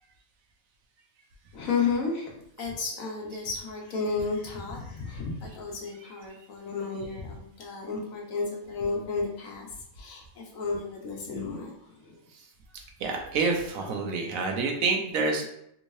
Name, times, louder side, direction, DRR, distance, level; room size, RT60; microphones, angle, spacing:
voice 1, 1.5-9.7 9.9-12.2, left 4 dB, 75° left, 0 dB, 1.3 m, -32 dB
voice 2, 13.0-15.5, right 4 dB, 80° right, 2 dB, 1.1 m, -27 dB
3.5 x 3.1 x 2.7 m, 0.76 s
omnidirectional pair, 1.4 m